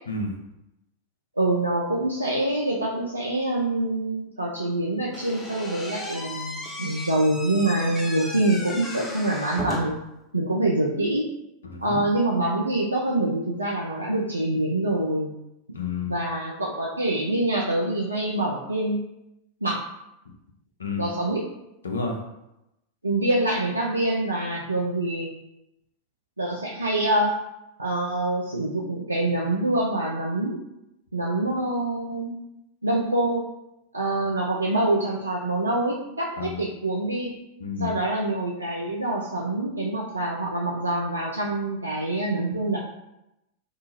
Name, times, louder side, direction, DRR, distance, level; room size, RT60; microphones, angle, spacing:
voice 1, 1.4-10.0 10.3-11.3 11.8-15.3 16.1-19.0 19.6-19.8 21.0-21.4 23.0-25.3 26.4-27.3 27.8-30.6 31.1-32.3 32.8-33.4 33.9-37.3 37.8-42.8, right 1 dB, 80° right, -3 dB, 0.3 m, -25 dB
Slam / Squeak, 5.1-10.1, left 1 dB, 15° left, 0.5 m, -36 dB
voice 2, 11.6-12.0 15.7-16.2 20.8-21.1 21.8-22.2 36.4-36.6 37.6-38.0, left 4 dB, 70° left, 1 dB, 0.5 m, -30 dB
2.7 x 2.3 x 2.8 m, 0.89 s
figure-of-eight pair, 90°, 0 cm